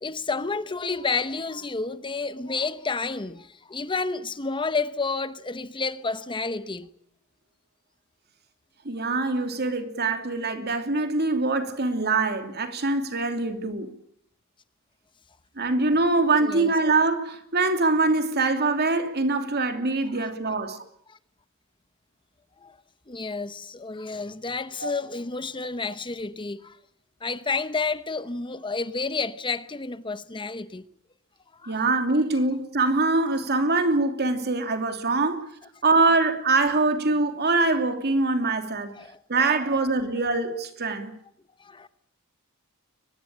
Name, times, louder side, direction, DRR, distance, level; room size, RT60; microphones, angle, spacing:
voice 1, 0.0-6.9 16.4-16.7 20.1-20.3 21.1-21.2 22.6-22.8 23.1-26.8 27.2-30.8 31.5-31.8 39.0-39.2 39.7-39.8 41.6-41.9, left 4 dB, 25° left, 0.9 m, -30 dB
voice 2, 8.8-13.9 15.6-20.8 24.8-24.9 31.7-35.5 35.8-38.9 39.3-41.1, right 3 dB, 50° right, 2.9 m, -24 dB
23.0 x 20.5 x 8.7 m
head